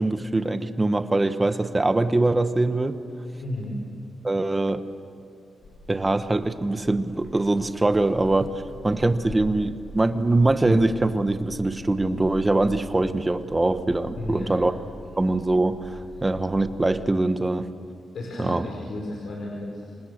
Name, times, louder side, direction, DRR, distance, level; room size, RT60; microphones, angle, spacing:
voice 1, 0.0-2.9 4.2-4.8 5.9-8.5 8.8-14.7 15.2-17.7 18.4-18.7, right 2 dB, 15° right, 10 dB, 1.1 m, -23 dB
voice 2, 3.4-3.8 14.1-14.6 18.1-19.8, left 1 dB, 70° left, -2 dB, 4.9 m, -33 dB
sound 1, 5.6-16.9, equal, 50° left, 3.9 m, -44 dB
29.0 x 26.0 x 6.6 m, 2.3 s
wide cardioid pair, 155°, 0 cm